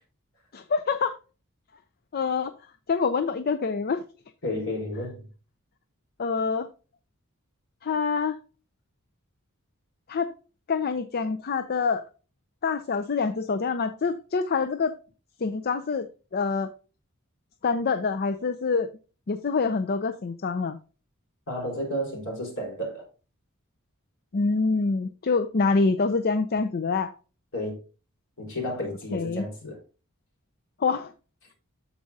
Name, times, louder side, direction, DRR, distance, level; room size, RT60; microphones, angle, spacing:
voice 1, 0.5-1.1 2.1-2.5 2.9-4.0 6.2-6.7 7.8-8.4 10.1-10.3 10.7-12.0 12.6-14.9 15.4-16.1 16.3-16.7 17.6-18.9 19.3-20.8 24.3-27.1 29.1-29.4 30.8-31.1, left 4 dB, 45° left, 0.5 m, -26 dB
voice 2, 4.4-5.3 21.5-23.0 27.5-27.8 28.4-29.8, left 1 dB, 65° left, 4.2 m, -32 dB
13.5 x 4.8 x 2.7 m
head